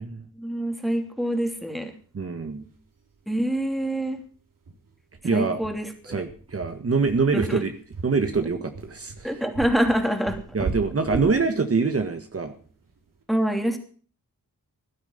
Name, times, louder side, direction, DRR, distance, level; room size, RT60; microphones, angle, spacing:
voice 1, 0.4-1.9 3.3-4.2 5.3-6.2 7.3-7.6 9.2-10.4 11.1-11.2 13.3-13.8, equal, ahead, 5 dB, 2.9 m, -26 dB
voice 2, 2.1-2.7 5.2-5.6 6.1-7.7 8.0-9.4 10.5-12.5, right 4 dB, 40° right, 7 dB, 1.7 m, -25 dB
sound 1, 2.7-2.8 3.1-3.2 3.6-3.7 4.1-4.2 4.7-13.1, right 4 dB, 65° right, 4.4 m, -37 dB
16.0 x 12.0 x 5.7 m, 0.43 s
wide cardioid pair, 105°, 34 cm